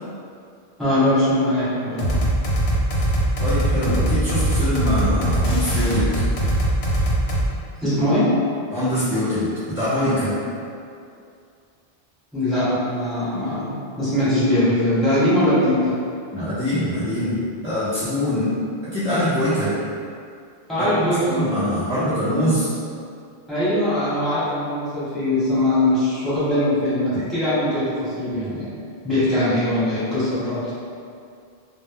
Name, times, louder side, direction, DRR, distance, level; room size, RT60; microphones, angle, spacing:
voice 1, 0.8-2.1 7.8-8.3 12.3-15.9 20.7-21.6 23.5-28.7 29.0-30.6, left 1 dB, ahead, -15 dB, 1.1 m, -21 dB
sound 1, 2.0-7.5, right 1 dB, 85° left, 0.8 m, -21 dB
voice 2, 3.4-6.1 8.7-10.3 16.3-18.5 18.9-19.8 20.8-20.9 21.2-22.7, left 1 dB, 20° left, -15 dB, 0.3 m, -23 dB
2.0 x 2.0 x 3.3 m, 2.4 s
omnidirectional pair, 1.0 m